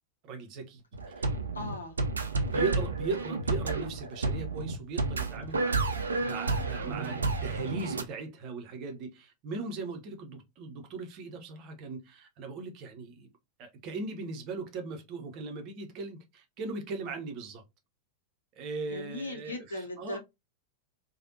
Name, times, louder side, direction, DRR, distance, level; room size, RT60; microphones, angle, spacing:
voice 1, 0.2-0.8 1.2-1.3 2.4-13.3 13.6-17.6 18.5-20.2, right 4 dB, 40° right, 0.8 m, -38 dB
sound 1, 0.9-8.0, right 3 dB, 75° right, 0.5 m, -31 dB
voice 2, 1.5-1.9 18.9-20.2, left 2 dB, 75° left, 0.7 m, -38 dB
3.3 x 2.3 x 2.7 m
figure-of-eight pair, 90°, 0 cm